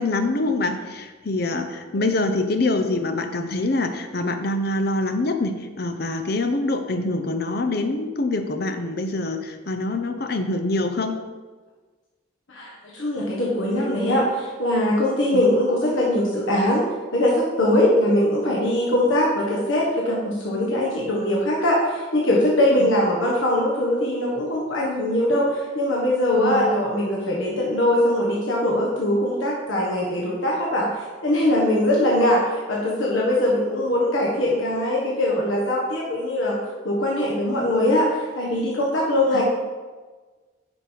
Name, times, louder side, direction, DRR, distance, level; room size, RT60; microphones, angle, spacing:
voice 1, 0.0-11.2 15.3-15.5 22.8-22.9 26.4-26.7 39.3-39.4, left 2 dB, 55° left, 7 dB, 0.7 m, -25 dB
voice 2, 12.5-16.8 17.1-36.6 36.8-39.4, left 1 dB, 90° left, -4 dB, 1.5 m, -21 dB
9.3 x 5.3 x 4.6 m, 1.4 s
head